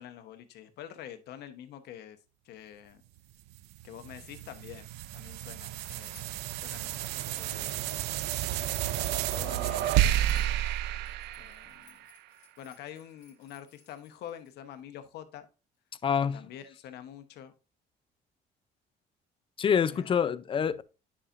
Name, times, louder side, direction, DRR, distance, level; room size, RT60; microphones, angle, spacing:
voice 1, 0.0-2.2 2.4-3.0 3.8-8.0 8.5-10.7 11.4-12.0 12.6-15.5 16.3-17.5 19.9-20.2, left 10 dB, 75° left, 1.0 m, -47 dB
sound 1, 3.5-12.1, right 13 dB, 85° right, 0.4 m, -31 dB
sound 2, 4.3-4.7 5.3-6.5 7.4-14.5, left 6 dB, 50° left, 2.0 m, -58 dB
voice 2, 16.0-16.4 19.6-20.8, left 7 dB, 30° left, 0.4 m, -26 dB
9.8 x 5.6 x 2.5 m
cardioid pair, 110°, 17 cm